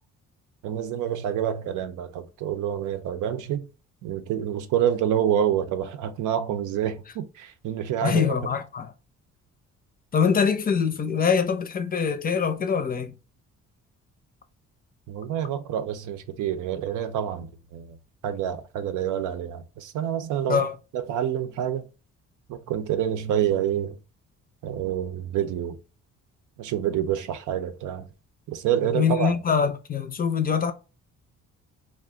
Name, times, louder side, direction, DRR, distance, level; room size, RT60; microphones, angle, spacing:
voice 1, 0.6-3.7 4.0-8.5 15.1-18.0 18.2-20.7 20.9-21.9 22.5-24.0 24.6-25.8 26.6-28.1 28.5-29.4, right 10 dB, 80° right, 0.6 m, -27 dB
voice 2, 8.0-8.9 10.1-13.1 20.5-20.7 28.9-30.7, left 6 dB, 30° left, 0.5 m, -24 dB
2.4 x 2.1 x 3.6 m
cardioid pair, 90°, 30 cm